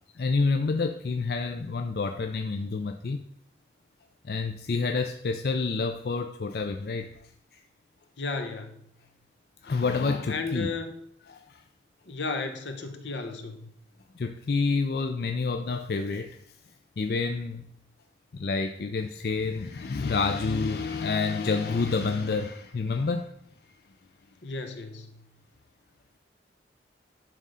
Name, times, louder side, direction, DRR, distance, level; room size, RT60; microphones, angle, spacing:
voice 1, 0.2-3.2 4.2-7.2 7.5-7.6 9.6-10.7 11.3-11.6 14.2-16.4 17.0-17.7 18.3-23.3, left 4 dB, 55° left, 6 dB, 0.4 m, -28 dB
voice 2, 8.2-8.7 10.3-10.9 12.1-13.7 24.4-25.2, left 3 dB, 80° left, 7 dB, 1.0 m, -34 dB
11.0 x 3.7 x 5.5 m, 0.70 s
head